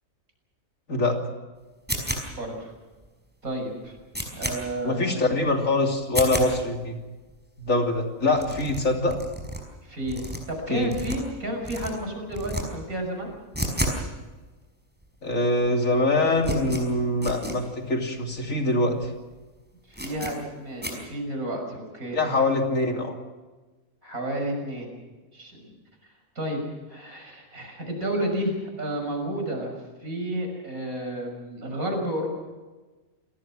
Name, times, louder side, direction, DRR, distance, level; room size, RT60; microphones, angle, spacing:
sound 1, 1.9-2.5 3.0-3.1 3.5-3.6 3.8-4.6 5.0-5.1 5.4-5.6 6.0-6.5 7.0-7.1 7.3-7.4 7.6-7.7 8.0-8.1 8.3-9.6 10.0-11.4 11.6-11.9 12.3-12.6 12.9-14.0 14.3-14.4 15.0-15.1 15.3-15.7 15.9-17.6 18.0-18.1 18.3-18.4 18.9-19.1 19.3-19.4 19.9-20.3 20.8-20.9, equal, 5° right, 5.3 m, -31 dB
voice 1, 2.3-2.7 3.4-3.9 4.3-5.1 8.5-8.6 9.8-13.3 19.9-22.2 24.0-24.9 25.3-25.7 26.0-26.6 26.9-32.3, right 1 dB, 90° right, 2 dB, 6.7 m, -31 dB
voice 2, 4.8-7.0 7.6-9.2 10.7-10.9 15.2-19.1 22.1-23.2, left 2 dB, 70° left, 2 dB, 3.3 m, -24 dB
28.5 x 19.0 x 6.2 m, 1.2 s
omnidirectional pair, 1.4 m